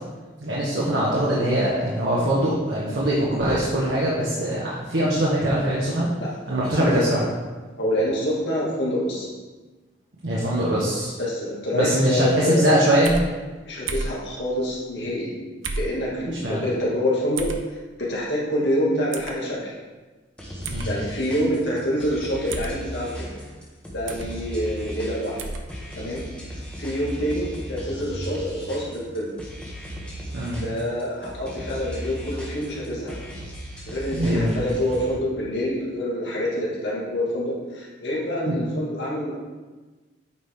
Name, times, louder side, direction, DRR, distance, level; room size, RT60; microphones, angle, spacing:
voice 1, 0.4-6.1 6.5-7.2 10.2-11.1 11.7-13.2 16.3-16.6 20.6-20.9 30.3-30.6 34.1-34.5 38.5-38.6, right 1 dB, 65° right, -6 dB, 1.4 m, -22 dB
voice 2, 6.8-7.2 7.8-9.3 11.2-12.6 13.6-15.3 15.7-17.5 18.0-19.7 20.9-23.4 23.9-25.4 26.0-26.2 26.8-29.3 30.6-33.2 33.9-39.4, equal, 65° left, -5 dB, 2.1 m, -26 dB
sound 1, 13.0-13.3 13.9-14.2 15.6-15.9 17.4-17.6 19.1-19.3 20.6-20.9 22.5-22.8 24.1-24.3 25.4-25.6, right 3 dB, 85° right, 0.7 m, -30 dB
sound 2, 20.4-35.2, equal, 5° left, 1.2 m, -36 dB
8.8 x 5.1 x 3.6 m, 1.3 s
head